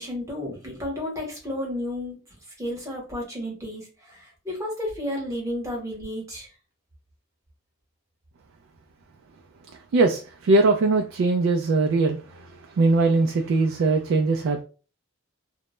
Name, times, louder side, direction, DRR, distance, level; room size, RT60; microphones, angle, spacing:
voice 1, 0.0-2.2 2.6-6.5, left 1 dB, 15° right, 1.0 m, -32 dB
voice 2, 9.9-12.2 12.8-14.6, right 3 dB, 65° right, 0.3 m, -21 dB
2.2 x 2.0 x 2.9 m
head